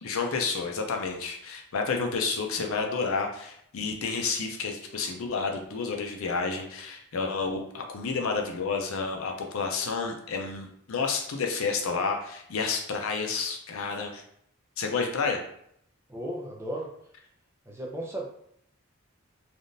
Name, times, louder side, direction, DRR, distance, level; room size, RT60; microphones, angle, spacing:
voice 1, 0.0-14.2 14.8-15.4, left 4 dB, 75° left, 3 dB, 0.5 m, -30 dB
voice 2, 16.1-16.9 17.7-18.3, right 1 dB, 10° right, -1 dB, 0.4 m, -35 dB
3.5 x 2.4 x 2.6 m, 0.69 s
head